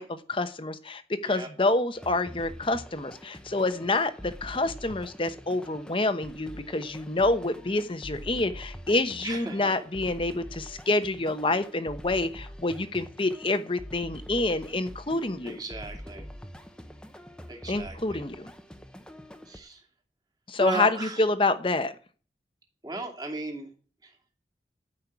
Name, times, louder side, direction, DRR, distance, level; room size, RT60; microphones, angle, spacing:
voice 1, 0.0-15.6 17.7-18.5 20.5-21.9, left 2 dB, 30° left, 10 dB, 1.0 m, -27 dB
sound 1, 1.9-19.6, equal, 5° left, 1.0 m, -45 dB
voice 2, 9.2-9.7 15.4-16.2 17.5-18.2 19.5-19.8 20.6-21.2 22.8-23.7 24.0-24.1, right 2 dB, 25° right, 2 dB, 2.6 m, -35 dB
13.5 x 5.7 x 8.2 m, 0.40 s
head